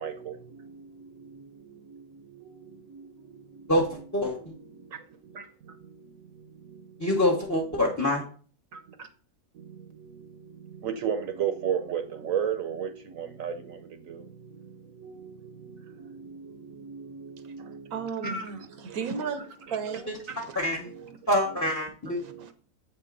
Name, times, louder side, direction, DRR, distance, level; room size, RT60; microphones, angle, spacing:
voice 1, 0.0-3.7 4.7-7.1 8.7-9.1 9.5-19.0 19.7-19.8 20.3-20.4 20.9-21.0 22.2-22.5, right 8 dB, 70° right, 1.1 m, -36 dB
voice 2, 3.7-4.5 7.0-8.2 20.1-20.2 20.5-20.9 21.3-22.2, left 1 dB, 15° left, 0.9 m, -26 dB
voice 3, 17.9-18.4 18.8-20.5 22.2-22.5, right 6 dB, 85° right, 1.3 m, -34 dB
7.8 x 5.8 x 4.0 m
omnidirectional pair, 1.5 m